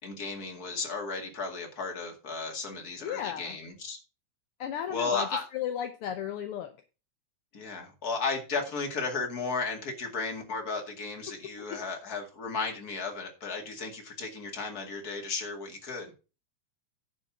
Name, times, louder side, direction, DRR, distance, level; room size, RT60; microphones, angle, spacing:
voice 1, 0.0-4.0 4.9-5.5 7.5-16.1, left 4 dB, 35° left, 3 dB, 2.3 m, -34 dB
voice 2, 3.0-3.6 4.6-5.3 5.5-6.7 11.7-11.8, left 10 dB, 70° left, 7 dB, 1.4 m, -34 dB
10.5 x 4.4 x 7.2 m, 0.33 s
omnidirectional pair, 3.4 m